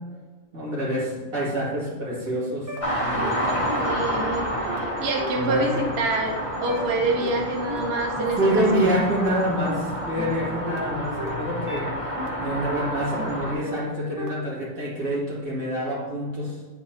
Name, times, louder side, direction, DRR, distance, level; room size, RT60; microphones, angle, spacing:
voice 1, 0.5-2.7 3.0-3.6 5.3-5.8 8.3-12.0 12.4-16.6, equal, 85° right, -6 dB, 2.5 m, -27 dB
sound 1, 2.3-2.4 2.7-2.8 3.2-3.3 3.7-3.8 4.2-4.3 4.7-4.8 5.2-5.3 5.7-5.8 6.2-6.3 6.7-6.8 7.2-7.3 7.7-7.8 8.2-8.3 8.7-8.8 9.2-9.3 9.7-9.8 10.2-10.3 10.7-10.8 11.2-11.3 11.7-11.8 12.2-12.3 12.7-12.8 13.2-13.3 13.7-13.8 14.2-14.3, right 1 dB, 15° right, 0.7 m, -34 dB
sound 2, 2.8-13.5, equal, 25° left, 1.1 m, -29 dB
voice 2, 3.8-9.0, right 2 dB, 55° right, 2 dB, 0.9 m, -27 dB
8.8 x 4.5 x 2.8 m, 1.4 s
omnidirectional pair, 1.4 m